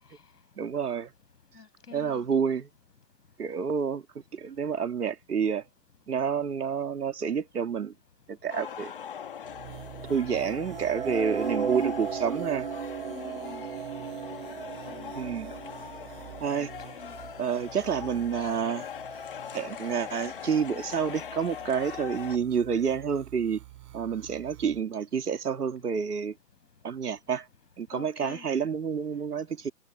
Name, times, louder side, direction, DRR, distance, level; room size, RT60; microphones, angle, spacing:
voice 1, 0.6-1.1 1.9-2.7 3.4-4.0 4.3-5.6 6.1-7.9 8.3-8.9 10.1-12.7 15.2-15.5 16.4-16.7 17.4-18.9 19.5-23.6 23.9-26.3 26.8-27.5 27.8-29.7, right 6 dB, 70° right, 2.7 m, -29 dB
voice 2, 1.5-2.2 13.1-13.7 14.9-15.1 16.6-17.2 27.9-28.5, left 5 dB, 75° left, 8.0 m, -46 dB
sound 1, 8.5-22.4, left 8 dB, 35° left, 2.1 m, -41 dB
sound 2, 9.4-24.8, right 18 dB, 15° right, 3.0 m, -49 dB
sound 3, 10.7-16.9, right 7 dB, 45° right, 1.1 m, -35 dB
hypercardioid pair, 175°, 47 cm